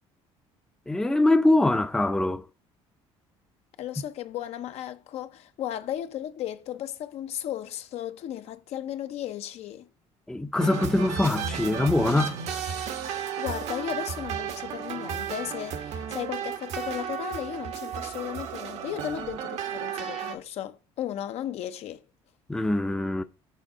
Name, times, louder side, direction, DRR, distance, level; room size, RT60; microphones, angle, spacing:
voice 1, 0.9-2.4 10.3-12.3 22.5-23.2, left 2 dB, 5° left, 0.5 m, -23 dB
voice 2, 3.8-9.9 13.4-22.0, left 11 dB, 65° left, 0.6 m, -35 dB
sound 1, 10.6-20.4, right 7 dB, 70° right, 1.0 m, -33 dB
7.6 x 3.5 x 5.1 m
cardioid pair, 110°, 12 cm